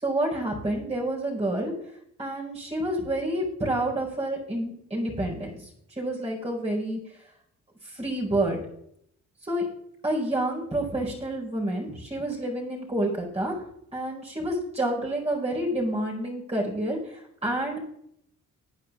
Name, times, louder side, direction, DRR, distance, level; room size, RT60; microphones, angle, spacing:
voice 1, 0.0-1.7 2.2-7.0 7.8-8.6 9.4-9.7 10.0-13.6 13.9-17.8, right 1 dB, 20° right, -3 dB, 4.8 m, -29 dB
20.0 x 9.2 x 2.5 m, 0.74 s
cardioid pair, 90°, 30 cm